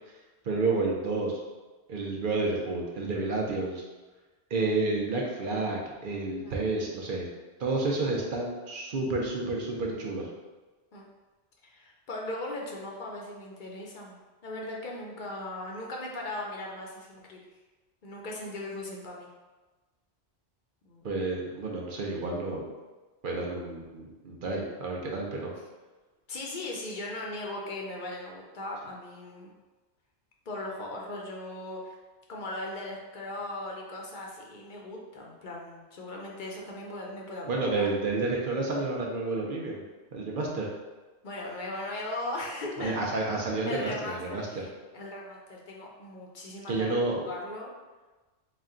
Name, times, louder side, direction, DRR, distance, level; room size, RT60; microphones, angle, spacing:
voice 1, 0.4-1.4 1.9-3.8 4.5-7.3 7.6-10.3 21.0-22.7 23.2-25.5 37.5-39.8 40.1-40.7 42.8-44.5 46.7-47.3, right 3 dB, 55° right, -1 dB, 0.7 m, -30 dB
voice 2, 11.6-17.4 18.0-19.3 20.8-21.1 26.3-29.5 30.5-31.9 32.3-37.9 41.2-43.0 43.7-47.7, left 2 dB, 50° left, -1 dB, 0.7 m, -38 dB
4.1 x 2.2 x 3.7 m, 1.2 s
omnidirectional pair, 1.2 m